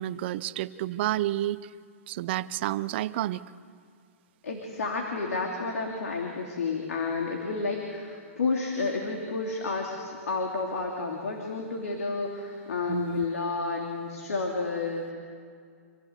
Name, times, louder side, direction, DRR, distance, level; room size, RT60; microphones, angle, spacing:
voice 1, 0.0-1.7 2.1-3.4 12.9-13.2, right 14 dB, 45° right, 16 dB, 0.7 m, -30 dB
voice 2, 4.4-15.1, left 3 dB, 90° left, 1 dB, 3.0 m, -31 dB
26.5 x 16.0 x 8.2 m, 2.1 s
hypercardioid pair, 145°, 8 cm